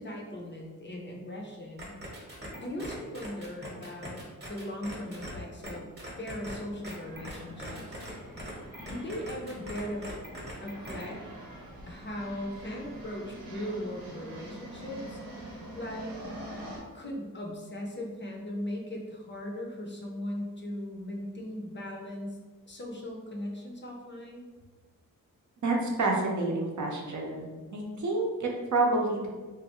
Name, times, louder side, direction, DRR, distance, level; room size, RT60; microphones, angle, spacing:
voice 1, 0.0-1.9 2.6-5.9 6.2-8.0 8.8-10.1 10.6-11.2 11.9-15.2 15.7-16.2 16.9-22.4 22.7-24.5, left 1 dB, 35° left, 0 dB, 0.5 m, -38 dB
sound 1, 1.8-5.3 5.6-5.7 6.0-6.6 6.8-8.1 8.4-11.0, equal, 30° right, 0.9 m, -41 dB
sound 2, 6.6-16.8, right 1 dB, 85° right, 0.9 m, -45 dB
voice 2, 25.6-27.4 27.7-29.3, right 2 dB, 60° right, -1 dB, 0.6 m, -28 dB
3.1 x 2.4 x 2.9 m, 1.3 s
wide cardioid pair, 110°, 34 cm